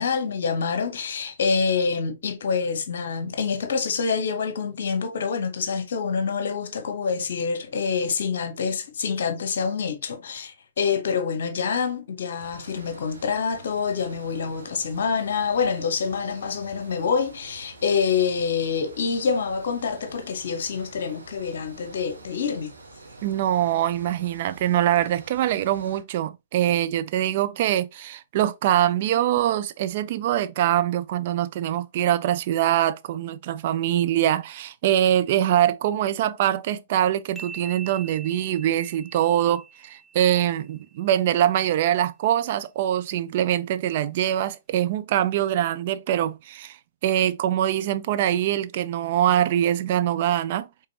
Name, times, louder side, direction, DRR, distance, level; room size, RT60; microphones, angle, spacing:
voice 1, 0.0-22.7, left 5 dB, 55° left, 0.9 m, -26 dB
sound 1, 12.4-26.0, right 3 dB, 75° right, 1.2 m, -47 dB
voice 2, 23.2-46.8 47.0-50.7, right 11 dB, 45° right, 0.4 m, -23 dB
sound 2, 37.4-40.9, right 5 dB, 5° right, 0.8 m, -44 dB
5.1 x 3.5 x 2.7 m
figure-of-eight pair, 115°, 0 cm